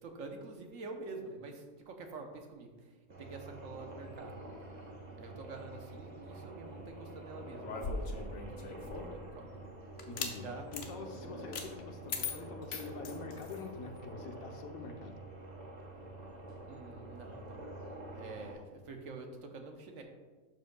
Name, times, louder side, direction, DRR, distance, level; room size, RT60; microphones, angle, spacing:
voice 1, 0.0-4.3 5.2-8.0 8.2-9.5 10.4-10.7 11.1-11.4 16.6-17.8 18.1-20.0, right 3 dB, 65° right, 4 dB, 1.2 m, -47 dB
sound 1, 3.1-18.5, right 1 dB, 30° right, 1.1 m, -48 dB
sound 2, 7.6-9.2 10.0-10.4 10.7-10.9 11.5-11.7 12.1-13.6, left 4 dB, 60° left, 1.0 m, -39 dB
voice 2, 10.1-10.4 10.7-15.1, left 4 dB, 80° left, 4 dB, 1.3 m, -45 dB
12.0 x 5.0 x 2.2 m, 1.4 s
omnidirectional pair, 1.5 m